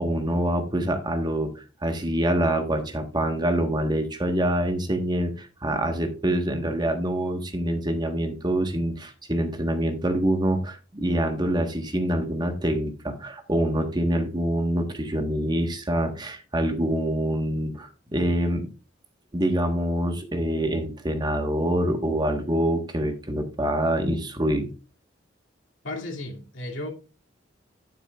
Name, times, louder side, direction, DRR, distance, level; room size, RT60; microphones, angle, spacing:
voice 1, 0.0-18.7 19.3-24.7, right 1 dB, 25° right, 1.3 m, -25 dB
voice 2, 25.8-26.9, left 1 dB, 90° left, 2.6 m, -34 dB
10.5 x 9.2 x 2.4 m
head